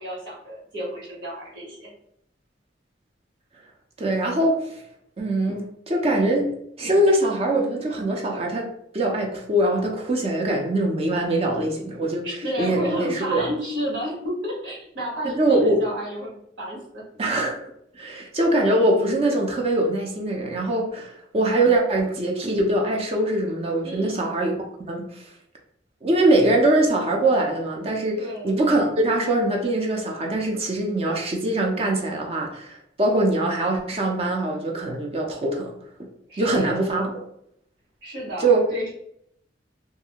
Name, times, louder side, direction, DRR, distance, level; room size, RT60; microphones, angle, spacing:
voice 1, 0.0-1.9 12.2-17.0 23.8-24.3 28.2-28.5 36.3-37.2 38.0-38.9, equal, 80° right, -5 dB, 1.2 m, -32 dB
voice 2, 4.0-4.8 5.2-6.5 6.8-8.7 8.9-12.3 12.6-13.5 15.2-15.8 17.2-25.3 26.0-35.7 36.4-37.1 38.4-38.6, right 1 dB, 35° right, 1 dB, 0.4 m, -23 dB
2.6 x 2.4 x 2.8 m, 0.73 s
head